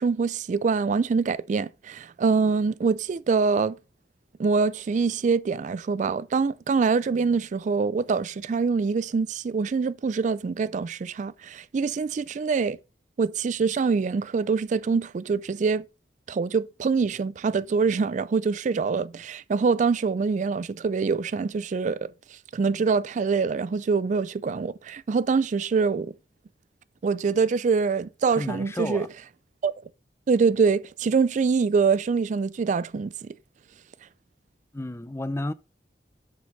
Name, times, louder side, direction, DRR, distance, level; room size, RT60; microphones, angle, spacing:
voice 1, 0.0-3.8 4.4-12.8 13.2-15.8 16.3-22.1 22.5-26.1 27.0-29.1 29.6-29.7 30.3-33.4, right 5 dB, 45° right, 0.3 m, -24 dB
voice 2, 28.4-29.1 34.7-35.5, left 1 dB, 15° left, 0.5 m, -31 dB
7.4 x 6.3 x 5.2 m
head